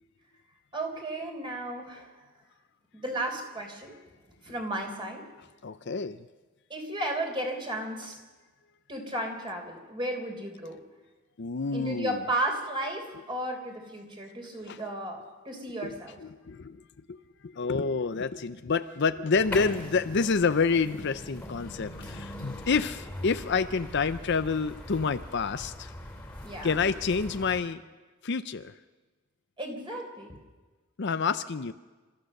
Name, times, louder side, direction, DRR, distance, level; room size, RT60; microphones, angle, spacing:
voice 1, 0.7-2.1 2.9-4.0 4.4-5.2 6.7-8.2 8.9-10.8 11.7-16.2 26.4-26.9 29.6-30.3, right 1 dB, 20° right, 2 dB, 3.8 m, -34 dB
voice 2, 5.6-6.3 11.4-12.2 14.7-14.8 15.8-16.8 17.1-25.9 26.6-27.8 28.2-28.7 31.0-31.7, left 5 dB, 50° left, 11 dB, 0.5 m, -28 dB
sound 1, 19.3-27.6, left 1 dB, 10° left, 2.9 m, -41 dB
28.5 x 14.0 x 6.6 m, 1.3 s
head